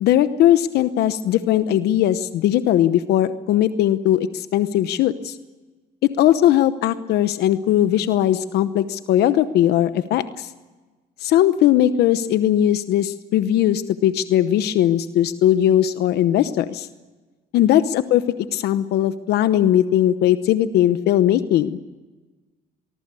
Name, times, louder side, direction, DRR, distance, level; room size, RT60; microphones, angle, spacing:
voice 1, 0.0-5.4 6.0-10.5 11.2-16.9 17.5-21.8, left 12 dB, 75° left, 12 dB, 0.9 m, -19 dB
24.0 x 21.0 x 6.9 m, 1.3 s
cardioid pair, 110°, 17 cm